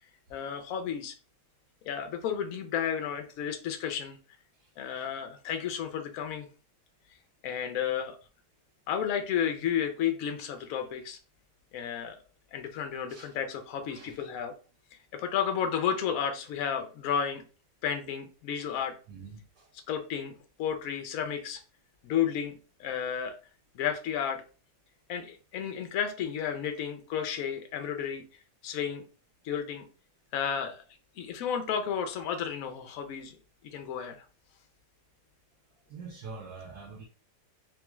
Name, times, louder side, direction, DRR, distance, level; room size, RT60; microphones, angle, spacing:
voice 1, 0.3-1.1 1.9-4.2 4.8-6.5 7.4-8.2 8.9-11.2 11.7-12.2 12.5-14.5 15.1-17.4 17.8-18.9 19.9-20.3 20.6-21.6 22.0-23.4 23.7-24.4 25.1-28.2 28.6-29.0 29.4-29.9 30.3-30.8 31.2-33.4 33.6-34.2, left 8 dB, 65° left, 0.9 m, -32 dB
voice 2, 4.6-5.0 13.1-13.3 13.9-14.3 18.6-19.7 35.9-37.0, right 4 dB, 75° right, 1.5 m, -46 dB
3.7 x 2.3 x 3.0 m
omnidirectional pair, 1.8 m